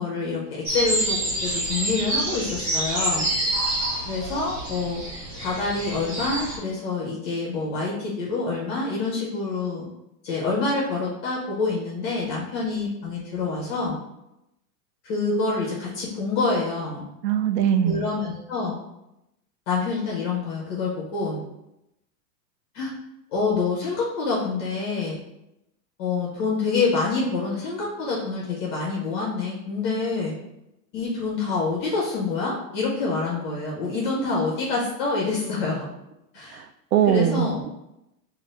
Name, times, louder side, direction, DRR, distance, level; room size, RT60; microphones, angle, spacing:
voice 1, 0.0-3.3 4.1-5.0 5.4-9.9 10.2-14.0 15.0-17.0 17.8-18.8 19.7-21.4 22.7-22.9 23.3-25.2 26.0-30.3 30.9-35.9 36.3-36.6 37.0-37.6, left 3 dB, 20° left, -4 dB, 0.4 m, -26 dB
sound 1, 0.7-6.6, right 1 dB, 25° right, 1.6 m, -27 dB
voice 2, 17.2-18.0 36.5-36.7 36.9-37.7, right 9 dB, 80° right, 10 dB, 0.6 m, -21 dB
6.3 x 2.4 x 3.2 m, 0.87 s
supercardioid pair, 170°, 49 cm